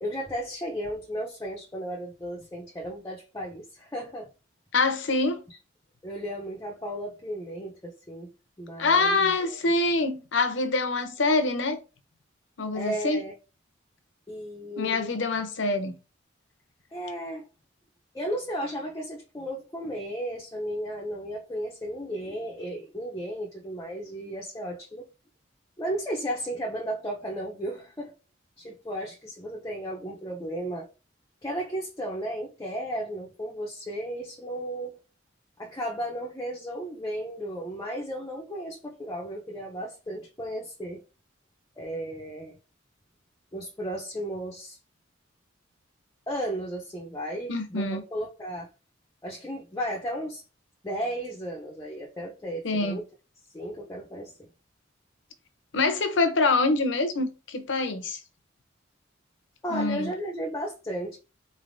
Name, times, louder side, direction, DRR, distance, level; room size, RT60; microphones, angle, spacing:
voice 1, 0.0-4.3 6.0-8.3 8.6-9.5 12.7-13.3 14.3-15.1 16.9-17.5 18.1-25.1 25.8-28.1 28.6-30.9 31.4-35.0 35.6-41.0 41.8-42.6 43.5-44.8 46.3-48.7 49.2-50.4 50.8-53.0 53.5-54.5 59.6-61.2, equal, 15° left, 0.6 m, -34 dB
voice 2, 4.7-5.4 8.8-11.8 12.6-13.2 14.8-15.9 47.5-48.0 52.6-53.0 55.7-58.2 59.7-60.1, left 3 dB, 65° left, 0.7 m, -25 dB
3.9 x 3.3 x 2.6 m
head